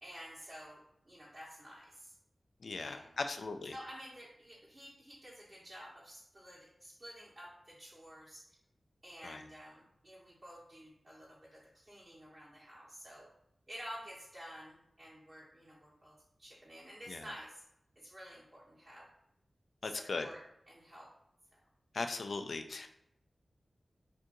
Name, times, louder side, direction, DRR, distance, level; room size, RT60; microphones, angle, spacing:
voice 1, 0.0-2.1 2.8-3.3 3.7-8.4 9.0-13.3 13.7-17.6 17.9-19.1 19.8-21.1, equal, 45° right, -7 dB, 1.1 m, -51 dB
voice 2, 2.6-3.7 9.2-9.4 17.1-17.2 19.8-20.3 21.9-22.9, left 3 dB, 75° left, 7 dB, 0.3 m, -38 dB
2.7 x 2.6 x 3.7 m, 0.77 s
cardioid pair, 45°, 0 cm